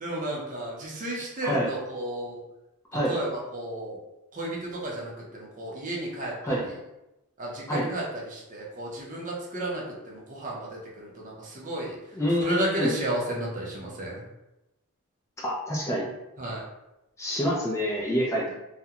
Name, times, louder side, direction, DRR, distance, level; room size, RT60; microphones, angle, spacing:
voice 1, 0.0-2.4 3.1-4.0 4.3-6.6 7.4-12.0 12.4-14.2 16.4-16.6, right 1 dB, 35° right, -3 dB, 0.6 m, -33 dB
voice 2, 12.1-12.9 15.4-16.1 17.2-18.5, equal, 15° left, -4 dB, 0.4 m, -27 dB
2.4 x 2.1 x 2.8 m, 0.93 s
head